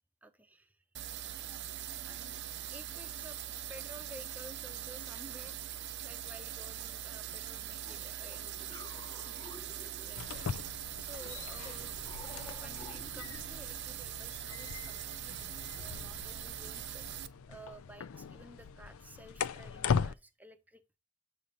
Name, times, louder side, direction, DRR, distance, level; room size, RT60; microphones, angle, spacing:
voice 1, 0.2-0.8 1.5-1.6 2.0-2.4 2.7-3.4 3.7-9.4 10.0-10.5 10.7-11.9 12.6-20.8, right 1 dB, 10° right, 0.6 m, -54 dB
sound 1, 0.9-17.3, right 11 dB, 55° right, 0.6 m, -42 dB
sound 2, 7.8-10.6 11.2-13.9, left 2 dB, 25° left, 0.9 m, -53 dB
sound 3, 10.1-20.1, left 6 dB, 90° left, 0.4 m, -39 dB
8.1 x 2.8 x 5.2 m
head